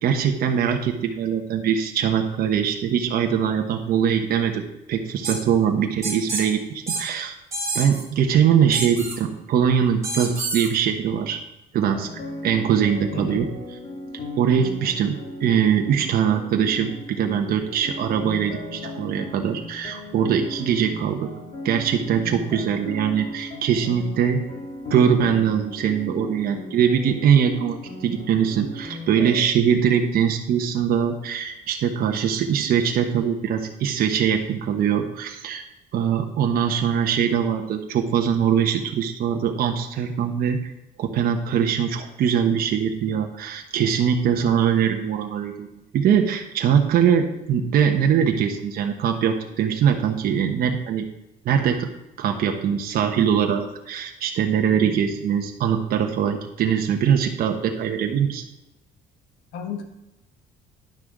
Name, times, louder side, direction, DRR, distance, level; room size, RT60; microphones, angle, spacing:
voice 1, 0.0-7.3 7.7-11.4 11.7-12.1 12.4-13.5 14.4-21.3 21.6-24.4 24.9-35.6 35.9-40.7 41.0-45.7 45.9-51.0 51.4-51.9 52.2-58.4, right 8 dB, 60° right, 3 dB, 1.1 m, -22 dB
sound 1, 5.2-5.4 6.0-6.4 6.9-7.0 7.5-8.0 8.7-9.2 10.0-10.7, right 3 dB, 20° right, 3.7 m, -28 dB
sound 2, 11.9-29.4, left 1 dB, 40° left, 2.2 m, -37 dB
voice 2, 59.5-59.8, left 6 dB, 80° left, 5 dB, 1.5 m, -32 dB
10.5 x 6.3 x 4.8 m, 0.95 s
cardioid pair, 110°, 17 cm